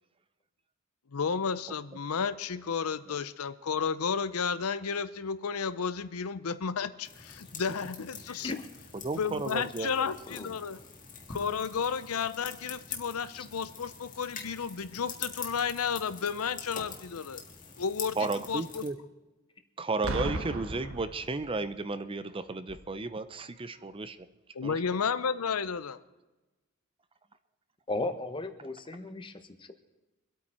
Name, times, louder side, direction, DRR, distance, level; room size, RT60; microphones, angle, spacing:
voice 1, 1.1-8.6 9.2-10.8 11.3-17.4 17.8-18.2 18.5-18.8 24.5-26.0, left 6 dB, 90° left, 13 dB, 0.6 m, -32 dB
sound 1, 7.0-18.9, left 6 dB, 40° left, 1.8 m, -45 dB
voice 2, 8.3-8.7 10.3-10.6 13.3-13.5 27.9-29.7, left 2 dB, 25° left, 8 dB, 1.0 m, -36 dB
voice 3, 8.9-10.2 18.2-19.0 19.8-24.2 24.6-25.0, right 3 dB, 25° right, 12 dB, 0.5 m, -34 dB
Boom, 20.0-21.8 22.7-22.9, right 2 dB, 65° right, 1.2 m, -35 dB
24.0 x 8.6 x 4.4 m, 1.1 s
head